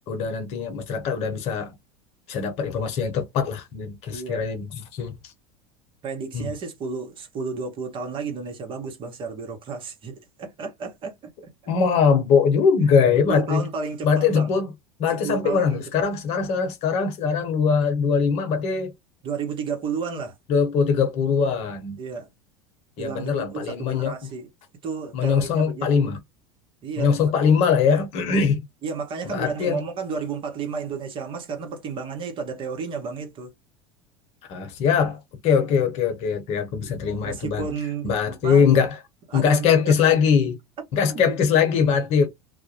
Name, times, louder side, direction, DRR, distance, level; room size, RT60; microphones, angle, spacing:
voice 1, 0.1-1.7 2.3-4.7 4.9-5.1 6.3-6.5 11.7-13.6 14.0-14.7 15.0-18.9 20.5-22.0 23.0-24.1 25.1-26.2 27.0-28.6 29.2-29.8 34.5-37.6 38.0-39.0 39.3-40.6 40.9-42.3, left 6 dB, 50° left, 0.8 m, -21 dB
voice 2, 4.1-4.4 6.0-11.5 13.3-14.6 15.1-15.8 19.2-20.3 22.0-22.3 23.0-24.5 24.8-26.0 26.8-27.1 28.8-33.5 36.8-36.9 37.2-38.7 39.3-40.1 41.1-41.4, right 5 dB, 40° right, 1.0 m, -32 dB
2.3 x 2.1 x 2.8 m
hypercardioid pair, 80°, 13 cm